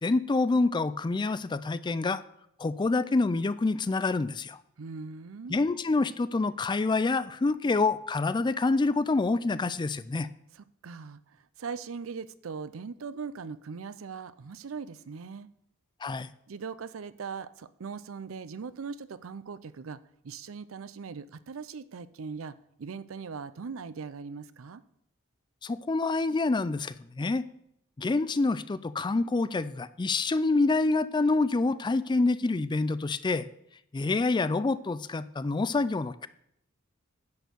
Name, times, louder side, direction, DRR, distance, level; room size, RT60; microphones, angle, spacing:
voice 1, 0.0-2.2 2.6-4.6 5.5-10.3 16.0-16.3 25.6-27.4 28.0-33.5 33.9-36.3, left 3 dB, 20° left, 15 dB, 0.4 m, -27 dB
voice 2, 4.8-5.6 10.5-15.5 16.5-20.0 20.2-24.8, right 5 dB, 75° right, 15 dB, 0.5 m, -40 dB
10.5 x 4.4 x 6.7 m, 0.75 s
head